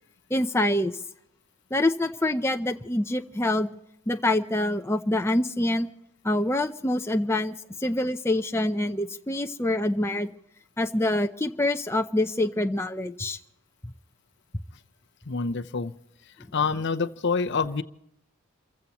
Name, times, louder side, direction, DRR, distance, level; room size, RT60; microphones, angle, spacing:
voice 1, 0.3-1.0 1.7-3.7 4.1-5.9 6.2-7.5 7.8-10.3 10.8-13.4, left 1 dB, 10° left, 5 dB, 0.6 m, -25 dB
voice 2, 15.3-15.9 16.5-17.8, left 4 dB, 50° left, 10 dB, 0.7 m, -26 dB
29.0 x 15.5 x 3.0 m, 0.79 s
head